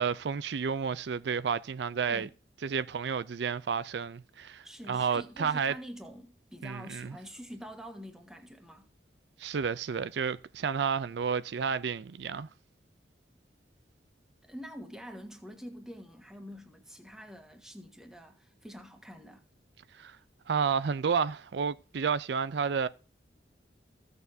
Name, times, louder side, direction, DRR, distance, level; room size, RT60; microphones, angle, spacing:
voice 1, 0.0-2.3 2.6-5.7 6.6-7.1 9.4-12.5 19.9-20.2 20.5-22.9, right 6 dB, 80° right, 0.4 m, -31 dB
voice 2, 4.6-8.9 14.4-19.5, equal, 5° right, 1.4 m, -46 dB
15.5 x 6.8 x 2.7 m
head